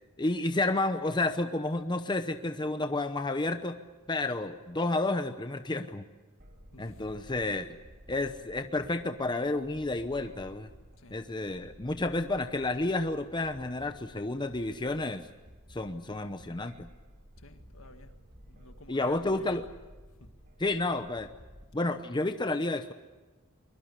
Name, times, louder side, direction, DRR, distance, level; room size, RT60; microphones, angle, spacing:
voice 1, 0.2-3.8 4.1-6.1 6.8-7.7 8.1-10.7 11.1-15.3 15.7-16.9 18.9-19.7 20.6-21.3 21.7-22.9, left 2 dB, 20° left, 8 dB, 0.8 m, -31 dB
sound 1, 6.4-21.6, equal, 45° right, 3.0 m, -54 dB
voice 2, 6.7-7.2 11.0-11.2 17.4-18.1 18.5-19.5 20.2-20.3, left 3 dB, 65° left, 7 dB, 1.8 m, -52 dB
24.0 x 22.0 x 8.3 m, 1.2 s
head